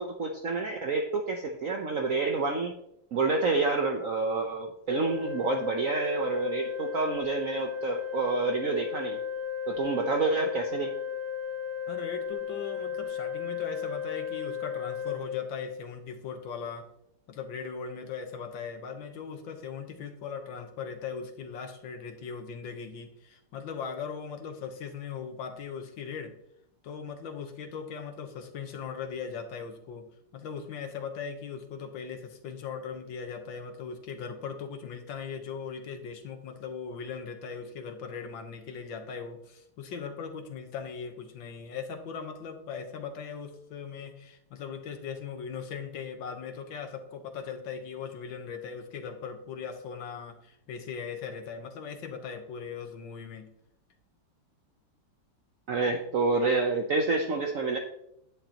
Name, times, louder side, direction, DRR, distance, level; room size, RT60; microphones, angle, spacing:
voice 1, 0.0-2.7 3.1-9.2 9.7-10.9 55.7-57.8, right 3 dB, 55° right, 3 dB, 1.1 m, -28 dB
Organ, 4.9-15.9, left 8 dB, 5° left, 3.0 m, -35 dB
voice 2, 11.9-16.9 17.3-26.3 26.8-53.5, left 6 dB, 85° left, 6 dB, 1.9 m, -39 dB
10.5 x 9.5 x 3.0 m, 0.77 s
omnidirectional pair, 2.0 m